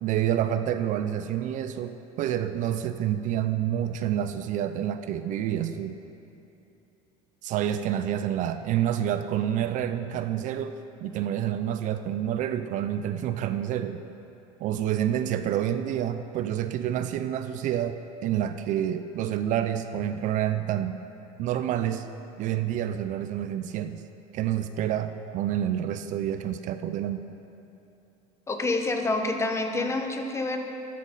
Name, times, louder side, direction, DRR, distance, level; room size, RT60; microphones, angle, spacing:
voice 1, 0.0-6.0 7.4-14.0 14.6-21.0 21.4-22.1 22.4-24.0 24.3-27.4, right 10 dB, 55° right, 9 dB, 0.5 m, -28 dB
voice 2, 28.5-30.6, left 2 dB, 15° left, 4 dB, 1.0 m, -27 dB
12.5 x 11.0 x 4.1 m, 2.9 s
cardioid pair, 120°, 16 cm